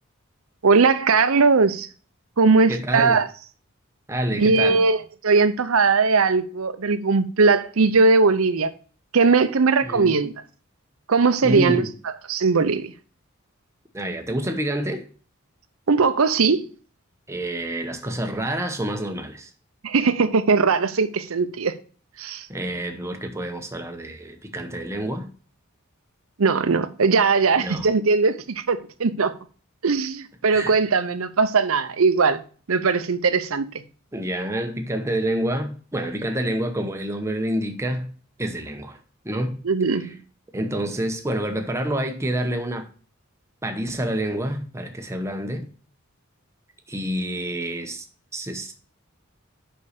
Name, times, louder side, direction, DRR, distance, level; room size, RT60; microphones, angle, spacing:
voice 1, 0.6-1.9 2.4-3.3 4.3-8.7 9.1-10.3 11.1-11.8 12.3-12.9 15.9-16.7 19.8-21.7 22.2-22.5 26.4-29.3 29.8-32.4 32.7-33.7 39.6-40.1, right 4 dB, 75° right, 0.7 m, -19 dB
voice 2, 2.7-3.2 4.1-4.8 9.8-10.1 11.4-11.9 13.9-15.1 17.3-19.5 22.5-25.3 27.6-27.9 30.5-30.7 34.1-38.1 38.4-39.0 39.2-39.6 39.9-40.1 40.5-42.9 43.6-45.7 46.9-48.1 48.3-48.7, right 1 dB, 15° right, 0.9 m, -28 dB
5.5 x 5.5 x 6.5 m
head